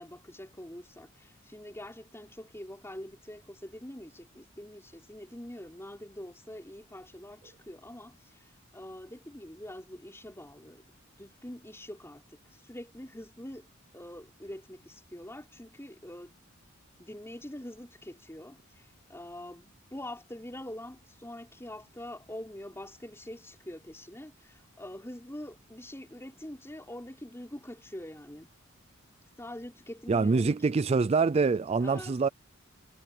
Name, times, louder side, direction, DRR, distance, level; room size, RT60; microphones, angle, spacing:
voice 1, 0.0-10.8 11.2-13.7 13.9-16.3 17.0-28.5 29.4-30.6 31.8-32.2, left 1 dB, 10° left, 5.1 m, -44 dB
voice 2, 30.1-32.3, right 4 dB, 30° right, 0.4 m, -25 dB
head